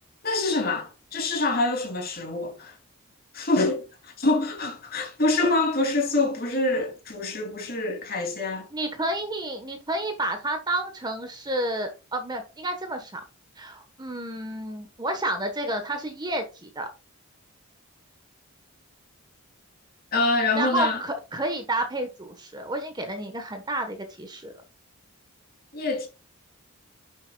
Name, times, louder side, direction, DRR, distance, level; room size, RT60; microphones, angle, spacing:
voice 1, 0.2-2.7 3.3-8.7 20.1-21.0 25.7-26.1, left 2 dB, 45° left, 3.1 m, -25 dB
voice 2, 8.7-13.2 13.6-16.9 20.6-24.5, right 1 dB, 20° right, 1.3 m, -30 dB
10.0 x 7.3 x 2.4 m
head